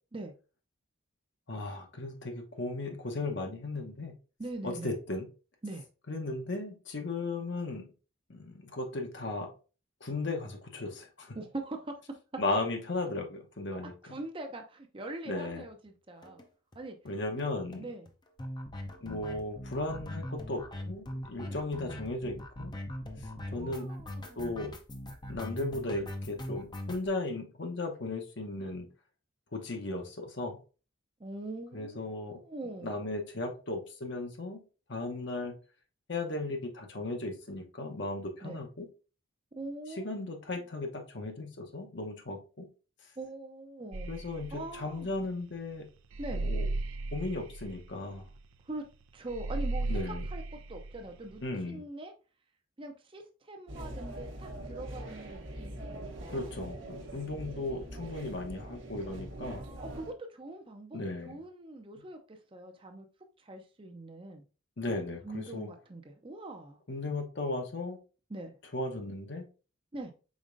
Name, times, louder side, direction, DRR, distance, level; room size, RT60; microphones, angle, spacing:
voice 1, 1.5-4.1 4.6-5.3 6.1-7.9 8.3-9.5 10.0-11.4 12.4-14.2 15.3-15.6 17.0-17.9 19.0-22.7 23.2-23.9 24.4-24.7 25.3-28.9 29.5-30.6 31.7-32.4 32.8-34.6 34.9-35.5 36.1-38.9 39.9-42.7 44.1-45.9 46.4-46.7 47.1-48.3 49.9-50.3 51.4-51.8 56.3-59.6 60.9-61.4 64.8-65.7 66.9-68.0 68.7-69.4, left 2 dB, 60° left, 0.9 m, -36 dB
voice 2, 4.4-4.9 5.6-5.8 11.4-12.0 14.0-16.4 16.7-17.0 17.3-17.5 17.8-18.1 21.4-21.6 23.5-24.5 31.2-32.9 38.4-38.6 39.5-40.1 43.2-44.1 44.5-45.1 46.2-46.5 48.6-48.8 49.1-50.4 50.7-52.1 52.8-56.5 59.4-61.0 61.3-63.1 63.4-64.4 65.2-66.8 68.3-68.6 69.9-70.1, right 2 dB, 25° right, 0.5 m, -42 dB
sound 1, 16.2-16.4 16.7-16.8 17.1-17.2 17.4-17.5 17.7-27.1, left 1 dB, 20° left, 0.5 m, -41 dB
sound 2, 43.9-51.5, right 2 dB, 80° right, 0.5 m, -36 dB
sound 3, 53.7-60.1, right 1 dB, 60° right, 1.0 m, -43 dB
5.1 x 4.1 x 2.5 m
head